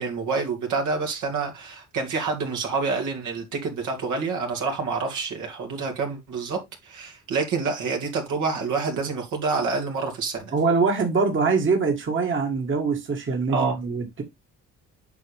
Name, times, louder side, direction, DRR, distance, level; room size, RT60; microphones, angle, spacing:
voice 1, 0.0-10.5 13.5-13.8, right 4 dB, 80° right, 2.6 m, -27 dB
voice 2, 10.5-14.2, right 4 dB, 40° right, 1.7 m, -23 dB
8.1 x 5.1 x 3.5 m
cardioid pair, 90°, 30 cm